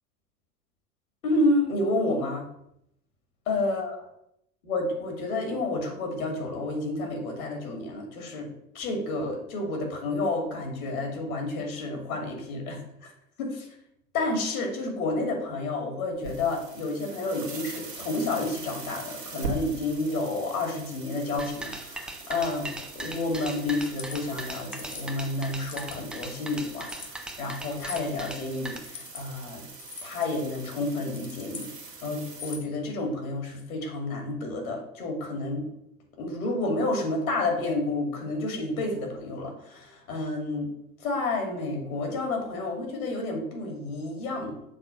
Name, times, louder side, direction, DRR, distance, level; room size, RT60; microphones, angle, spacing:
voice 1, 1.2-2.4 3.5-3.9 4.6-8.5 8.7-13.1 13.4-13.7 14.1-29.7 30.0-31.7 32.0-35.7 36.2-40.7 41.0-44.8, left 2 dB, 60° left, 2 dB, 2.5 m, -30 dB
sound 1, 16.2-32.6, right 4 dB, 85° right, 1.4 m, -42 dB
sound 2, 21.4-28.8, right 1 dB, ahead, 0.4 m, -39 dB
sound 3, 24.0-24.2 24.7-25.1 25.6-26.1 26.8-27.1 27.8-28.1 28.8-29.2 29.8-30.3 31.0-31.7 32.3-32.8, left 5 dB, 25° left, 1.1 m, -42 dB
6.7 x 3.5 x 6.2 m, 0.76 s
figure-of-eight pair, 90°, 47 cm